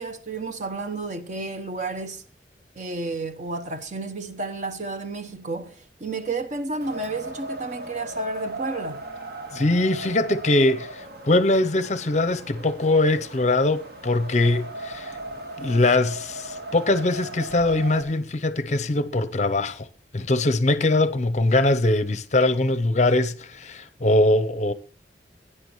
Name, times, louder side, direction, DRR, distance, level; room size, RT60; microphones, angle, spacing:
voice 1, 0.0-2.2 2.8-9.0, right 3 dB, 40° right, 0.9 m, -31 dB
Wind, 6.8-18.0, right 2 dB, 60° right, 1.7 m, -37 dB
voice 2, 9.5-15.1 15.6-19.9 20.1-24.7, left 2 dB, 40° left, 0.6 m, -22 dB
16.5 x 9.9 x 3.1 m
head